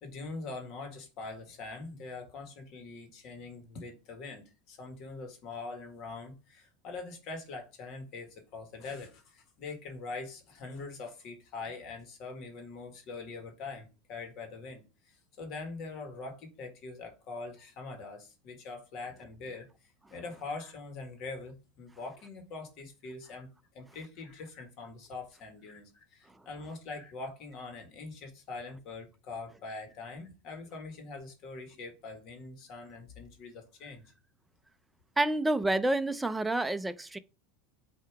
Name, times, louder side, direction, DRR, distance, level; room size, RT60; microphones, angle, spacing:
voice 1, 0.0-23.5 23.7-34.0, left 3 dB, 50° left, 1.7 m, -43 dB
voice 2, 35.2-37.2, right 2 dB, 5° right, 0.5 m, -28 dB
8.4 x 2.9 x 4.7 m
supercardioid pair, 120°, 0 cm